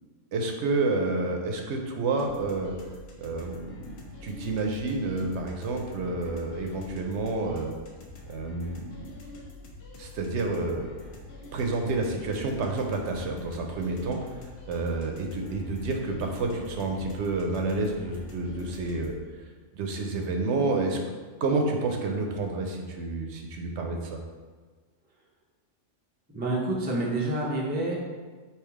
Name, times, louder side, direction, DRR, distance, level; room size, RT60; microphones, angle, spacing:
voice 1, 0.3-2.7 3.2-3.9 4.2-7.7 8.3-9.0 10.0-11.0 11.5-14.4 14.7-19.2 19.7-21.0 21.4-24.2, right 3 dB, 70° right, 3 dB, 0.9 m, -29 dB
sound 1, 2.1-19.1, left 2 dB, 60° left, 0.9 m, -46 dB
voice 2, 26.3-28.0, right 2 dB, 15° right, -3 dB, 0.3 m, -28 dB
3.5 x 2.8 x 4.6 m, 1.4 s
omnidirectional pair, 1.3 m